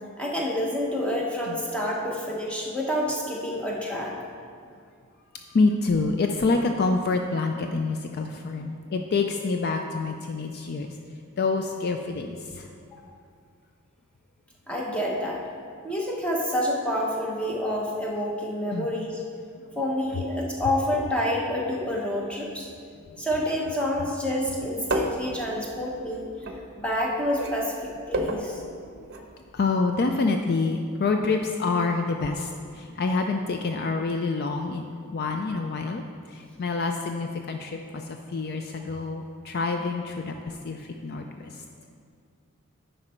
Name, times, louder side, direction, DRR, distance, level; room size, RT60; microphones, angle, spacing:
voice 1, 0.2-4.2 12.9-13.0 14.7-15.4 15.8-19.2 19.8-22.7 23.2-26.5 26.8-28.6, left 1 dB, 5° left, -3 dB, 1.1 m, -28 dB
voice 2, 5.3-11.0 11.4-12.7 18.7-18.9 28.8-29.3 29.5-36.0 36.3-41.6, left 3 dB, 45° left, 4 dB, 0.4 m, -27 dB
sound 1, 24.8-27.0 27.3-29.3 29.6-29.7, right 1 dB, 45° right, 0.7 m, -31 dB
9.9 x 5.4 x 4.4 m, 2.2 s
head